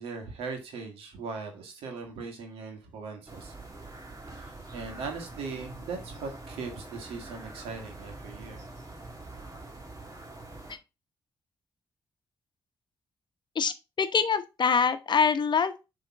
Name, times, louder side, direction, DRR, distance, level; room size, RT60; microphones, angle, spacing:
voice 1, 0.0-3.5 4.4-8.6, right 4 dB, 85° right, 1.8 m, -39 dB
sound 1, 3.3-10.7, right 2 dB, 35° right, 1.9 m, -45 dB
voice 2, 13.5-15.8, left 6 dB, 50° left, 0.9 m, -25 dB
7.0 x 3.7 x 4.7 m
supercardioid pair, 50°, 10 cm